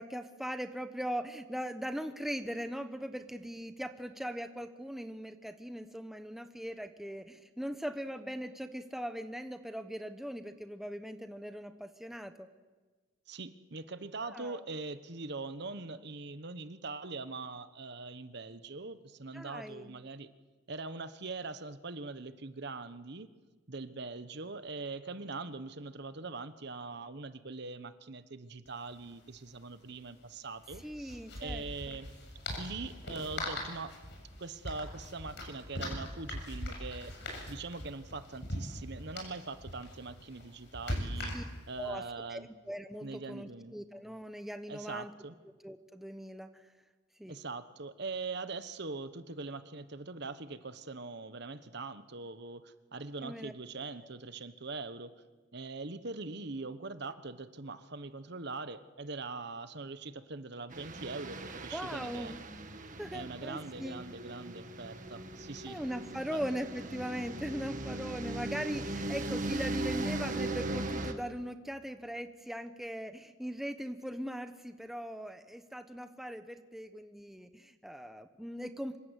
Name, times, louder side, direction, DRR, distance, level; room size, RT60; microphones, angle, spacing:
voice 1, 0.0-12.5 14.3-14.6 19.3-19.9 30.8-32.0 41.3-41.4 41.8-42.0 42.3-45.1 45.6-46.6 47.2-47.4 53.2-53.5 61.7-62.4 63.0-64.0 65.7-79.0, equal, ahead, 8 dB, 1.0 m, -40 dB
voice 2, 13.3-20.3 20.7-23.3 23.7-32.1 32.6-34.0 34.4-37.1 37.5-41.3 41.7-42.5 43.0-43.7 44.7-45.3 47.3-55.1 55.5-62.3 63.1-65.8 66.1-66.4, right 3 dB, 55° right, 12 dB, 1.2 m, -42 dB
sound 1, 28.7-28.8 29.0-29.1 30.6-41.8, left 1 dB, 55° left, 7.4 m, -41 dB
sound 2, 60.7-71.1, right 2 dB, 40° right, 1.8 m, -39 dB
26.0 x 24.0 x 8.2 m, 1.3 s
head